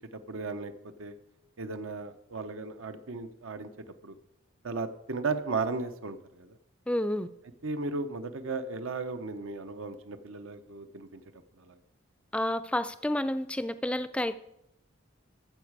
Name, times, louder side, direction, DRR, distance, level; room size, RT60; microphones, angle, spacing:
voice 1, 0.3-0.7 1.0-1.1 1.6-3.7 4.0-4.2 4.6-6.6 7.6-11.2 11.7-11.8, right 3 dB, 75° right, 9 dB, 0.8 m, -35 dB
voice 2, 6.9-7.3 12.3-14.4, left 1 dB, 5° left, 13 dB, 0.4 m, -30 dB
13.5 x 7.3 x 4.7 m, 0.82 s
head